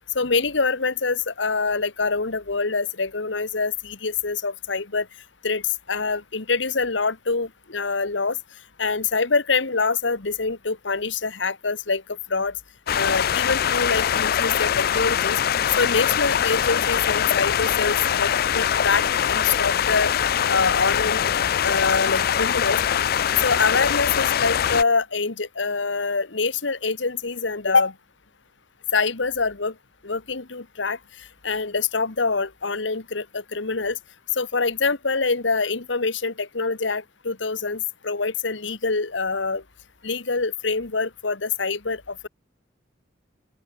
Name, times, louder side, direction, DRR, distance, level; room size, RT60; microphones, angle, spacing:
voice 1, 0.1-5.1 5.4-5.6 5.9-8.4 8.8-12.6 12.9-15.4 15.8-20.1 20.5-21.2 21.6-22.8 23.4-27.9 28.9-29.7 30.0-31.0 31.4-34.0 34.3-39.6 40.0-42.3, left 4 dB, 75° left, 1.5 m, -25 dB
sound 1, 12.9-24.8, left 9 dB, 55° left, 0.4 m, -23 dB
open air
head